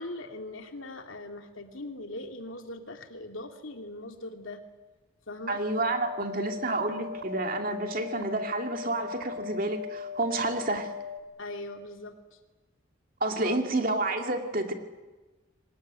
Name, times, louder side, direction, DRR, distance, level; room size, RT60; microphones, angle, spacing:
voice 1, 0.0-4.6 5.3-5.6 11.4-12.4 13.4-13.6, left 2 dB, 80° left, 4 dB, 2.5 m, -40 dB
voice 2, 5.5-10.9 13.2-14.7, right 2 dB, 45° right, 4 dB, 2.5 m, -29 dB
sound 1, 5.5-11.2, left 6 dB, 70° right, 2.7 m, -39 dB
24.0 x 19.0 x 9.5 m, 1.2 s
head